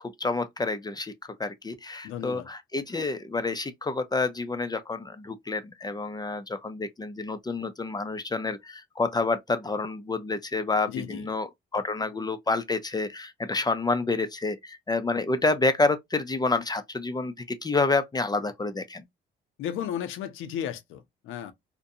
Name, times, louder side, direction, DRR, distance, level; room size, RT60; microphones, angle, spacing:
voice 1, 0.2-1.1 1.4-19.0, left 3 dB, 20° left, 0.4 m, -28 dB
voice 2, 2.0-2.5 10.9-11.3 19.6-21.5, left 9 dB, 85° left, 0.6 m, -34 dB
2.5 x 2.2 x 2.6 m
cardioid pair, 90°, 20 cm